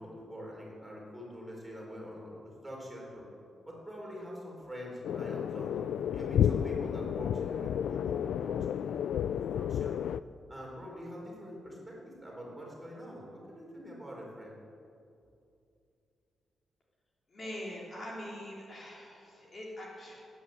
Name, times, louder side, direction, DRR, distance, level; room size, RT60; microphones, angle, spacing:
voice 1, 0.0-3.3 3.6-5.8 6.1-10.0 10.5-14.6, equal, 10° right, -3 dB, 4.2 m, -45 dB
sound 1, 5.0-10.2, left 9 dB, 85° left, 0.3 m, -31 dB
voice 2, 17.3-20.2, left 1 dB, 35° left, -4 dB, 3.2 m, -43 dB
18.5 x 9.7 x 7.9 m, 2.5 s
wide cardioid pair, 150°, 0 cm